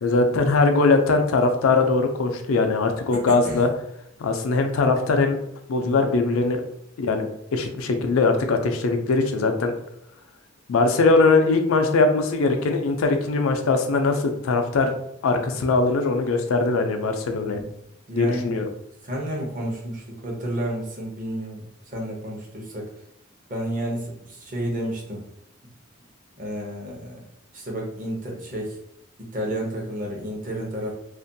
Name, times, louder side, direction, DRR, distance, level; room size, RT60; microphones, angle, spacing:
voice 1, 0.0-3.7 4.2-5.4 5.7-6.6 7.0-9.7 10.7-14.9 15.2-17.6 18.2-18.7, left 3 dB, 90° left, 5 dB, 0.4 m, -21 dB
voice 2, 3.1-3.6 5.8-5.9 17.5-17.7 18.1-18.6 19.0-22.9 23.5-25.2 26.4-27.2 27.5-28.8 29.3-30.9, right 1 dB, 40° right, -1 dB, 0.7 m, -31 dB
2.5 x 2.2 x 2.6 m, 0.76 s
head